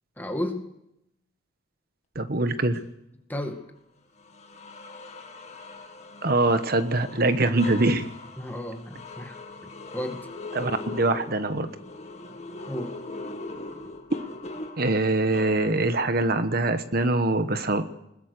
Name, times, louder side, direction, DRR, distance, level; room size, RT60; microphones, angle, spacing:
voice 1, 0.2-0.7 3.3-3.6 8.4-9.4 9.9-10.3 12.7-12.9, left 1 dB, 10° left, 4 dB, 2.1 m, -32 dB
voice 2, 2.1-2.8 6.2-8.1 10.5-11.7 14.8-17.8, right 2 dB, 50° right, 10 dB, 1.2 m, -23 dB
sound 1, 3.4-3.6 4.2-16.1, left 2 dB, 35° left, 2.1 m, -41 dB
21.0 x 20.5 x 6.7 m, 0.83 s
head